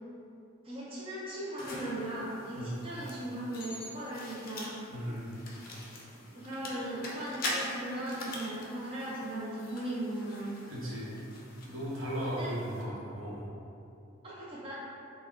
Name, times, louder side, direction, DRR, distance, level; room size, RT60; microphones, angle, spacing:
voice 1, 0.6-4.7 6.3-10.5 12.2-12.5 14.2-14.7, right 1 dB, 25° right, -8 dB, 0.5 m, -38 dB
sound 1, 1.6-12.8, left 1 dB, 45° left, 0.5 m, -43 dB
voice 2, 4.9-5.3 10.7-11.2 11.6-13.5, equal, 75° right, -6 dB, 0.8 m, -36 dB
3.3 x 2.1 x 3.6 m, 2.6 s
head